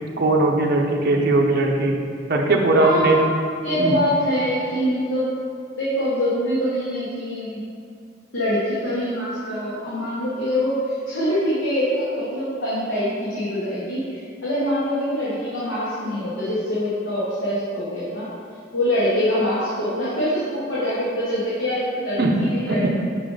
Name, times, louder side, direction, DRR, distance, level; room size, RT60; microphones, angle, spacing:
voice 1, 0.2-1.9 2.3-3.2 3.8-3.9 22.2-22.3 22.7-22.8, right 2 dB, 55° right, 0 dB, 0.6 m, -19 dB
voice 2, 2.8-3.2 3.6-5.4 5.8-7.6 8.3-18.3 18.7-23.0, equal, 70° left, -10 dB, 1.3 m, -24 dB
5.7 x 5.0 x 3.9 m, 2.3 s
head